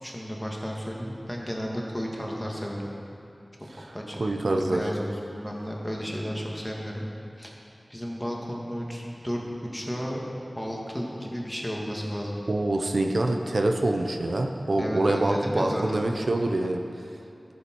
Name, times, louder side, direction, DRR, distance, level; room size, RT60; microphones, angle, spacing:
voice 1, 0.0-2.9 3.8-7.1 7.4-7.5 7.9-10.2 10.6-12.4 14.8-16.0, equal, 5° left, -2 dB, 1.8 m, -33 dB
voice 2, 4.2-4.8 12.5-16.8, right 2 dB, 75° right, 3 dB, 0.6 m, -25 dB
14.0 x 7.0 x 4.6 m, 2.6 s
wide cardioid pair, 50°, 0 cm